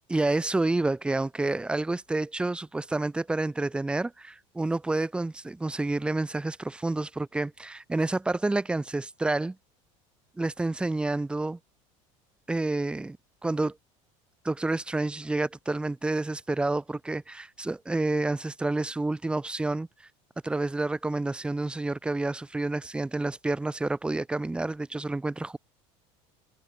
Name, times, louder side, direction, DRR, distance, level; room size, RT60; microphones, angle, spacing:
voice 1, 0.1-9.6 10.4-11.6 12.5-13.2 13.4-13.8 14.4-19.9 20.4-25.6, right 2 dB, 5° right, 0.3 m, -29 dB
hypercardioid pair, 85°, 17 cm